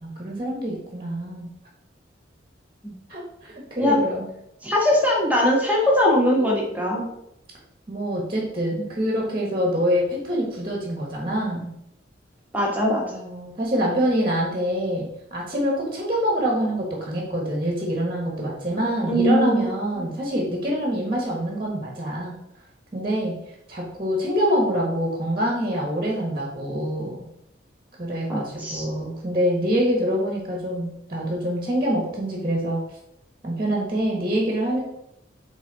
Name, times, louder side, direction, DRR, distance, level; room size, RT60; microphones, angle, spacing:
voice 1, 0.0-1.5 3.1-4.3 7.9-11.7 13.1-22.3 22.9-23.4 23.7-27.2 28.0-32.8 33.4-34.8, equal, 25° right, -1 dB, 1.4 m, -25 dB
voice 2, 4.6-7.1 12.5-13.0 19.1-19.7 28.3-28.9, left 1 dB, 10° right, -3 dB, 1.4 m, -21 dB
6.2 x 3.9 x 4.0 m, 0.79 s
head